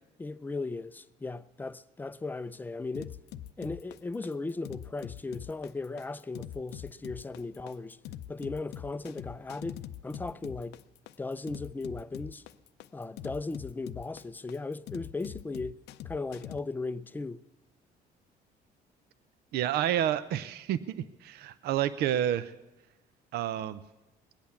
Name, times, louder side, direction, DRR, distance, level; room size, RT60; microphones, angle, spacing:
voice 1, 0.2-3.1 3.6-8.0 8.3-10.8 11.2-12.4 12.9-15.8 16.0-17.4, left 3 dB, 10° left, 0.4 m, -37 dB
sound 1, 2.9-16.6, left 12 dB, 80° left, 0.5 m, -43 dB
voice 2, 19.5-22.5 23.3-23.8, right 11 dB, 70° right, 0.6 m, -29 dB
20.5 x 8.6 x 7.0 m
cardioid pair, 110°, 17 cm